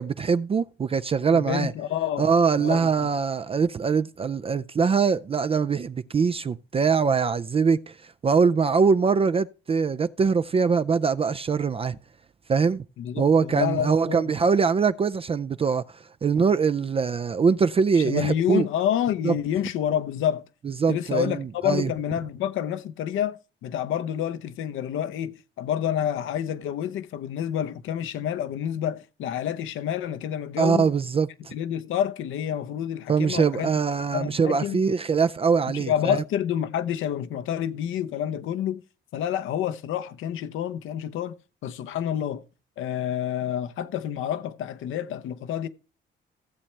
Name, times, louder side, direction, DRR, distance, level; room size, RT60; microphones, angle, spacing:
voice 1, 0.0-1.7 2.2-7.9 8.2-12.0 12.5-12.8 13.2-15.8 16.2-18.7 19.2-19.3 20.8-21.9 30.6-31.5 33.1-36.2, right 5 dB, 30° right, 0.4 m, -23 dB
voice 2, 1.3-2.3 2.6-3.1 13.0-14.3 18.0-20.4 20.9-30.9 31.5-33.7 34.1-34.8 35.7-38.8 39.1-41.3 41.6-42.4 42.8-45.7, left 10 dB, 85° left, 0.8 m, -28 dB
16.0 x 7.4 x 3.3 m
cardioid pair, 90°, 20 cm